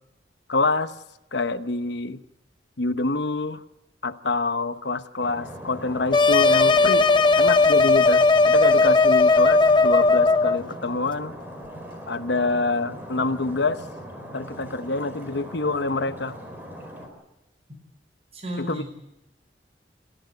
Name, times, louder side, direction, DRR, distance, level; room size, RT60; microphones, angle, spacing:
voice 1, 0.5-0.9 1.3-2.2 2.8-3.6 4.0-7.1 7.3-11.3 12.1-13.8 14.3-16.3 18.6-18.8, left 3 dB, 75° left, 10 dB, 1.1 m, -26 dB
Stream, 5.2-17.1, equal, 10° right, 4.9 m, -40 dB
sound 1, 6.1-10.6, left 3 dB, 25° left, 0.8 m, -17 dB
voice 2, 18.3-18.9, equal, 35° right, 3 dB, 5.2 m, -33 dB
28.0 x 14.0 x 9.2 m, 0.91 s
head